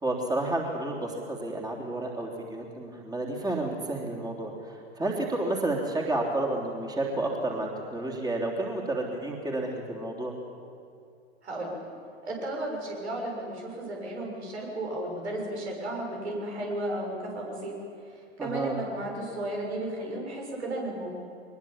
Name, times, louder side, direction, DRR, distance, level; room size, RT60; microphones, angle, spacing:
voice 1, 0.0-10.3 18.4-18.7, right 2 dB, 10° right, 0 dB, 3.4 m, -31 dB
voice 2, 12.2-17.7 18.1-21.1, right 1 dB, 75° right, -1 dB, 6.5 m, -34 dB
22.5 x 21.0 x 7.3 m, 2.5 s
hypercardioid pair, 100°, 33 cm